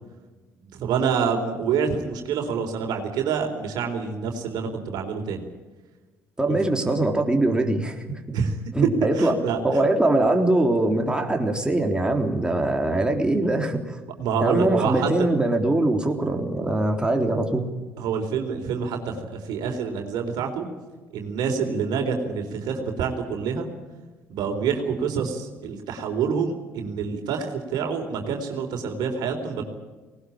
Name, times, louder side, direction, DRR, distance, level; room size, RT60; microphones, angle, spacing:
voice 1, 0.7-5.5 6.5-6.6 8.3-8.6 8.8-9.8 14.2-15.3 18.0-20.7 21.1-23.7 24.3-29.6, right 6 dB, 65° right, 4 dB, 3.9 m, -27 dB
voice 2, 6.4-8.0 8.7-9.4 9.6-14.0 14.4-17.7, right 2 dB, 10° right, 3 dB, 3.7 m, -22 dB
20.0 x 19.5 x 8.8 m, 1.3 s
hypercardioid pair, 60°, 7 cm